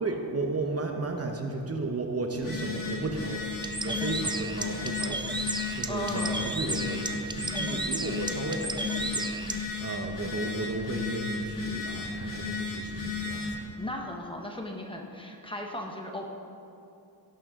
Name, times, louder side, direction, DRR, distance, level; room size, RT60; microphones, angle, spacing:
voice 1, 0.0-3.4 3.8-5.4 5.7-13.6, right 3 dB, 35° right, 3 dB, 1.0 m, -34 dB
Telephone, 2.3-13.6, left 4 dB, 50° left, 2.7 m, -34 dB
Bird, 3.5-9.6, right 2 dB, 10° right, 0.4 m, -34 dB
voice 2, 3.8-4.4 5.9-6.4 7.5-8.0 13.8-16.3, left 1 dB, 10° left, 1 dB, 1.1 m, -37 dB
17.0 x 11.0 x 3.7 m, 2.7 s
wide cardioid pair, 160°, 42 cm